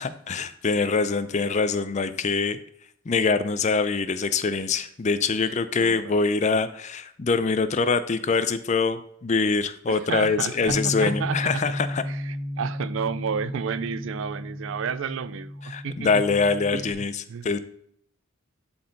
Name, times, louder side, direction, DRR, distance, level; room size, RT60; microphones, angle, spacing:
voice 1, 0.0-2.6 3.1-12.0 15.6-17.6, left 4 dB, 35° left, 0.4 m, -24 dB
voice 2, 5.7-6.2 9.9-11.6 12.1-16.2 16.7-17.5, right 6 dB, 65° right, 0.4 m, -32 dB
Bass guitar, 10.7-16.9, left 1 dB, ahead, 0.8 m, -33 dB
11.5 x 4.3 x 3.9 m
head